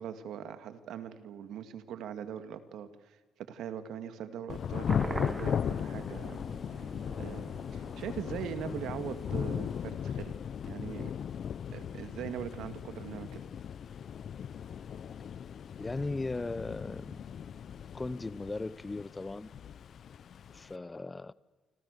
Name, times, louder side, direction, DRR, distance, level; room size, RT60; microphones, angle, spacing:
voice 1, 0.0-6.4 7.2-10.4 10.6-11.1 11.7-13.4, right 9 dB, 80° right, 2.1 m, -41 dB
Thunder / Rain, 4.5-20.8, left 8 dB, 60° left, 0.7 m, -37 dB
sound 1, 4.9-9.9, right 3 dB, 20° right, 1.0 m, -45 dB
voice 2, 15.8-17.2 17.8-19.5 20.5-21.3, left 2 dB, 20° left, 0.8 m, -38 dB
27.5 x 26.0 x 6.8 m
cardioid pair, 90°, 0 cm